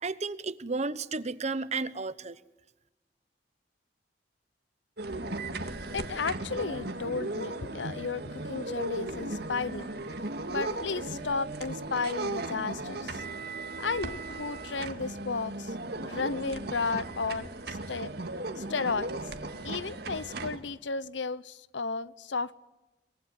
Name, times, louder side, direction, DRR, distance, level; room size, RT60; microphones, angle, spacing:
voice 1, 0.0-2.4, right 3 dB, 40° right, 16 dB, 1.0 m, -33 dB
sound 1, 5.0-20.6, right 2 dB, 60° right, 2.0 m, -37 dB
voice 2, 5.5-9.9 10.5-13.2 13.8-15.7 16.0-18.1 18.6-19.1 19.6-22.5, left 4 dB, 80° left, 18 dB, 0.9 m, -34 dB
23.5 x 22.5 x 9.3 m, 1.0 s
head